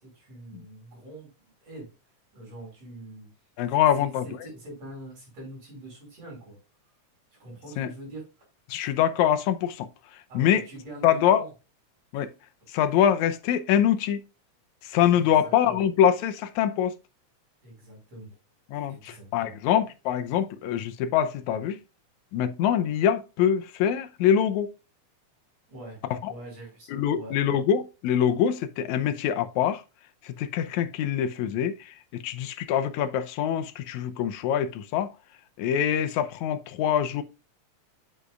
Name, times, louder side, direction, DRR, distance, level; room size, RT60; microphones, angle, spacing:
voice 1, 0.0-1.9 2.3-3.3 3.7-6.6 7.3-8.2 10.3-11.5 15.1-15.8 17.6-18.3 18.9-19.6 25.7-27.4, right 1 dB, 60° right, 6.2 m, -44 dB
voice 2, 3.6-4.3 7.8-7.9 8.7-9.9 10.3-10.6 11.0-11.4 12.1-12.3 12.7-14.2 14.8-16.9 18.7-21.8 22.3-24.7 26.1-26.3 26.9-29.8 30.2-35.1 35.6-37.2, left 9 dB, 80° left, 2.1 m, -24 dB
8.1 x 8.0 x 2.4 m
omnidirectional pair, 3.3 m